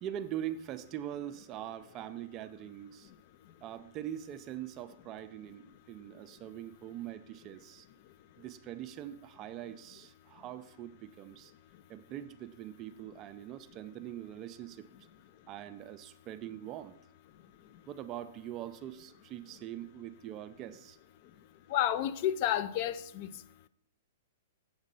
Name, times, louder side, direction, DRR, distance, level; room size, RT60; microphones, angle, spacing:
voice 1, 0.0-3.1 3.6-7.9 8.4-11.5 11.9-14.9 15.5-16.9 17.9-21.0, right 11 dB, 30° right, 0.4 m, -43 dB
voice 2, 21.7-23.3, left 11 dB, 45° left, 0.3 m, -30 dB
7.3 x 4.0 x 5.3 m
hypercardioid pair, 145°, 0 cm